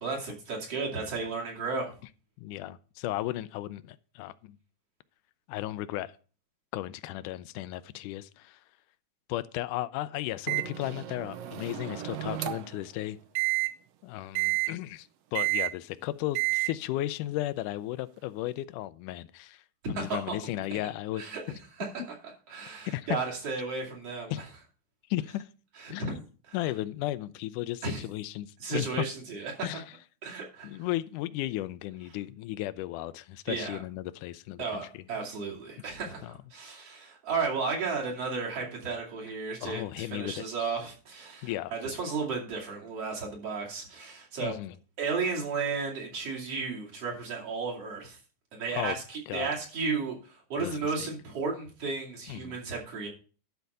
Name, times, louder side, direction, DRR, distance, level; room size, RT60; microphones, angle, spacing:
voice 1, 0.0-1.9 19.8-20.4 21.2-21.9 22.5-24.5 25.8-26.2 27.8-28.0 28.6-29.8 30.2-30.8 33.5-33.8 34.6-44.5 45.0-48.2 48.5-53.1, right 4 dB, 50° right, 3.4 m, -34 dB
voice 2, 2.4-4.6 5.5-6.1 6.7-8.6 9.3-13.2 14.0-19.6 19.9-21.2 22.9-23.1 24.3-24.4 25.1-25.5 25.9-26.0 26.5-29.1 29.6-29.8 30.6-35.0 36.2-36.3 39.6-40.5 41.4-41.7 44.4-44.8 48.7-49.0 49.3-49.5 50.6-50.8 52.3-52.6, left 15 dB, 90° left, 2.1 m, -35 dB
Microwave oven, 10.5-12.8 13.4-13.7 14.4-14.7 15.4-15.7 16.4-16.7, right 19 dB, 75° right, 1.5 m, -30 dB
11.5 x 4.6 x 6.6 m
omnidirectional pair, 3.5 m